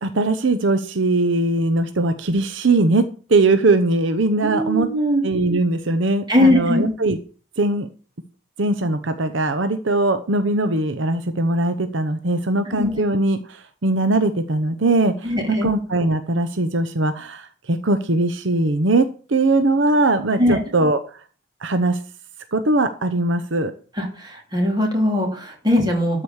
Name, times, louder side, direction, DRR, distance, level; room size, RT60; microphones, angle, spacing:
voice 1, 0.0-3.0 3.3-4.9 5.2-7.2 7.6-7.9 8.6-15.3 15.6-21.2 21.6-22.0 22.5-23.7, right 2 dB, 65° right, 9 dB, 0.8 m, -20 dB
voice 2, 4.4-5.2 6.3-6.9 12.7-13.0 15.2-15.7 20.4-20.6 24.0-26.2, left 1 dB, 20° right, 1 dB, 3.1 m, -20 dB
12.5 x 5.0 x 7.2 m, 0.39 s
head